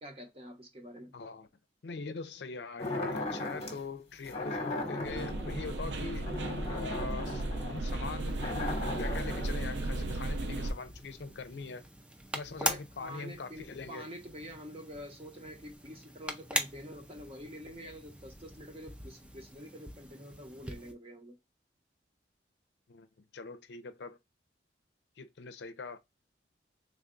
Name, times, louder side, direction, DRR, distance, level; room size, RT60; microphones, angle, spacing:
voice 1, 0.0-1.1 12.5-21.4, equal, 35° right, 0.9 m, -47 dB
voice 2, 1.1-1.5 1.8-6.3 6.7-7.4 7.7-8.5 9.0-11.8 12.3-14.1 22.9-23.1 23.3-24.2 25.2-26.0, left 4 dB, 70° left, 0.5 m, -42 dB
sound 1, 2.8-3.8 4.2-9.5, left 2 dB, 35° left, 1.0 m, -38 dB
sound 2, 5.0-10.7, right 2 dB, 90° right, 0.6 m, -35 dB
sound 3, 8.2-20.9, right 1 dB, 5° right, 0.4 m, -42 dB
3.4 x 2.2 x 3.7 m
head